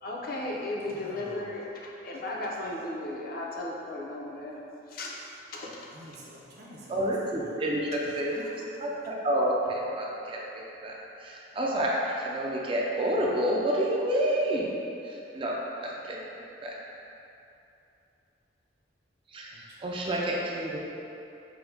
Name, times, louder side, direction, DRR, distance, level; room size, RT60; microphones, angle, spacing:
voice 1, 0.0-4.6 4.9-5.1 5.5-5.7 8.0-8.5, left 2 dB, 50° left, -2 dB, 0.5 m, -36 dB
voice 2, 0.8-1.5 5.9-7.0 7.3-7.6 19.5-19.9, equal, 60° right, -5 dB, 0.8 m, -48 dB
voice 3, 6.9-8.5 8.8-10.9 11.2-14.7 15.0-15.6 16.1-16.2 16.6-16.7 19.3-20.8, right 1 dB, 30° right, -3 dB, 0.4 m, -29 dB
5.9 x 2.1 x 3.4 m, 2.8 s
head